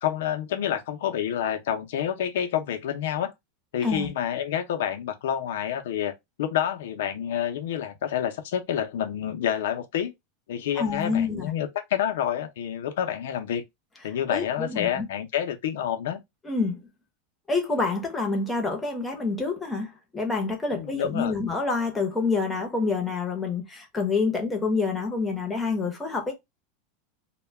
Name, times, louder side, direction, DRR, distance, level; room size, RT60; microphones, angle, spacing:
voice 1, 0.0-3.3 3.7-6.1 6.4-10.1 10.5-13.6 14.0-16.2 20.7-21.4, left 10 dB, 80° left, 0.5 m, -28 dB
voice 2, 10.8-11.5 14.3-15.0 16.4-16.8 17.5-26.3, left 4 dB, 10° left, 0.7 m, -27 dB
2.2 x 2.1 x 3.2 m
supercardioid pair, 155°, 0 cm